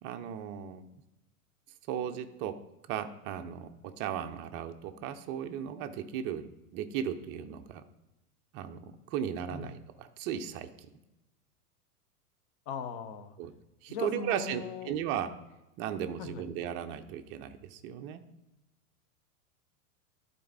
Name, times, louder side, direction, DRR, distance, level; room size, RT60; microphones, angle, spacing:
voice 1, 0.0-0.8 1.9-2.6 2.9-7.8 8.5-10.9 13.4-13.5 13.8-15.3 15.8-18.2, right 9 dB, 25° right, 8 dB, 0.5 m, -36 dB
voice 2, 12.7-13.4 13.9-14.9 16.2-16.5, left 6 dB, 40° left, 10 dB, 0.8 m, -39 dB
11.5 x 4.1 x 3.5 m, 0.96 s
figure-of-eight pair, 90°, 45 cm